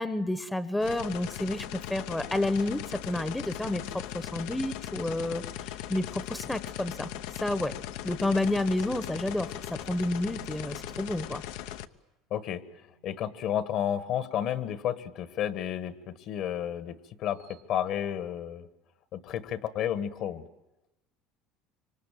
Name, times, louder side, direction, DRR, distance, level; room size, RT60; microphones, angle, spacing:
voice 1, 0.0-7.1 7.3-7.7 8.0-11.4, left 1 dB, 5° left, 13 dB, 0.9 m, -30 dB
sound 1, 0.8-11.9, left 12 dB, 85° left, 0.9 m, -39 dB
sound 2, 5.2-6.0 6.8-7.3 8.7-9.1 10.2-11.3 12.7-14.6 15.7-16.1 17.3-17.6, right 5 dB, 85° right, 1.7 m, -57 dB
voice 2, 12.3-12.6 13.0-18.7 19.1-20.5, left 10 dB, 55° left, 13 dB, 1.5 m, -32 dB
26.0 x 24.5 x 9.1 m, 0.97 s
cardioid pair, 135°, 0 cm